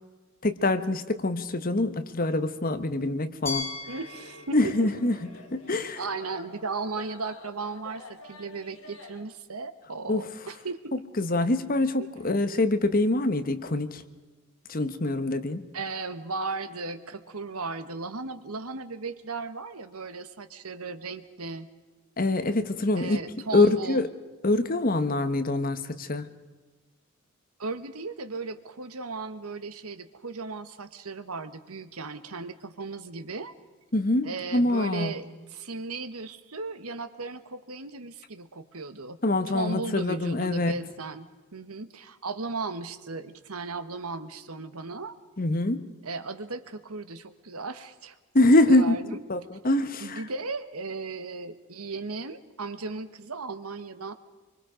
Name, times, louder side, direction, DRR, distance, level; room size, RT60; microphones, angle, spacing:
voice 1, 0.4-3.7 4.5-5.2 5.5-6.0 10.1-10.2 11.2-14.0 14.7-15.6 22.2-23.2 23.5-24.1 24.4-26.3 33.9-35.1 39.2-40.8 45.4-45.8 48.3-49.0 49.3-50.2, left 2 dB, 40° left, 10 dB, 1.2 m, -24 dB
Glass, 3.5-6.4, left 4 dB, 15° left, 6.2 m, -39 dB
sound 1, 3.8-9.2, left 2 dB, 65° left, 5.1 m, -48 dB
voice 2, 3.9-4.9 6.0-10.9 12.0-12.1 15.7-21.7 22.9-24.1 27.6-33.5 34.2-39.2 39.5-45.2 46.0-49.2 50.0-54.1, right 3 dB, 90° right, 11 dB, 1.4 m, -36 dB
25.5 x 24.0 x 5.1 m, 1.3 s
head